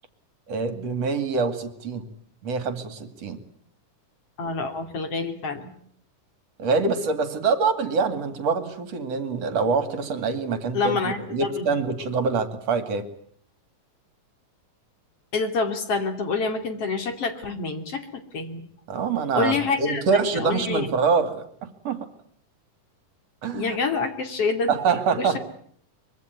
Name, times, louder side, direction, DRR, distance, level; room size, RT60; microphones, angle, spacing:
voice 1, 0.5-2.1 2.4-3.4 6.6-11.0 11.3-13.1 18.9-22.1 23.4-23.8 24.7-25.4, right 5 dB, 50° right, 11 dB, 3.2 m, -25 dB
voice 2, 4.4-5.7 10.7-11.7 15.3-18.6 19.3-20.0 20.3-20.9 23.5-24.7 25.2-25.4, left 4 dB, 45° left, 8 dB, 3.4 m, -27 dB
24.5 x 23.5 x 9.4 m, 0.62 s
omnidirectional pair, 3.8 m